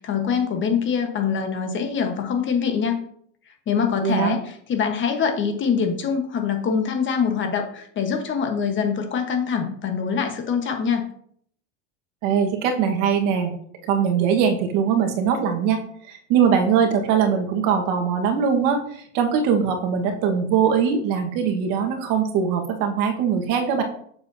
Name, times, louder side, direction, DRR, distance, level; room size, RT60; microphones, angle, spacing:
voice 1, 0.0-3.0 3.5-11.0, left 6 dB, 35° left, 5 dB, 1.2 m, -24 dB
voice 2, 4.0-4.3 12.2-13.5 13.8-15.8 16.1-23.8, right 7 dB, 65° right, 4 dB, 1.5 m, -21 dB
7.0 x 6.7 x 2.7 m, 0.63 s
supercardioid pair, 125°, 36 cm